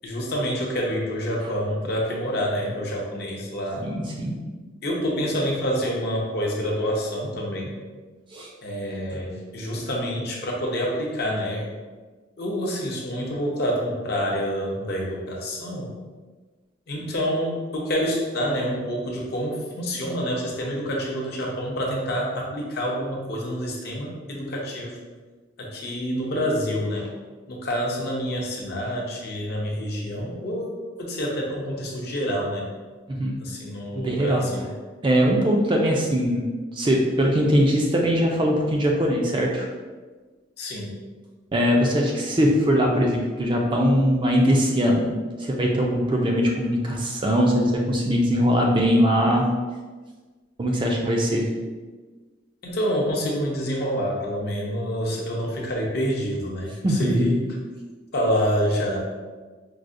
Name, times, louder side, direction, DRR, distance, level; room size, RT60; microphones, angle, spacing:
voice 1, 0.0-3.8 4.8-7.7 8.6-11.7 12.4-15.9 16.9-25.0 25.6-27.1 27.5-32.7 33.4-34.7 40.6-41.0 52.6-57.4 58.1-59.0, equal, 55° left, -2 dB, 0.6 m, -27 dB
voice 2, 3.8-4.4 8.3-8.5 33.1-33.4 33.9-34.4 35.0-36.4 36.7-39.7 41.5-45.1 45.4-49.5 50.6-51.5 56.8-57.4, equal, 25° right, 0 dB, 0.3 m, -21 dB
4.6 x 2.1 x 2.5 m, 1.3 s
head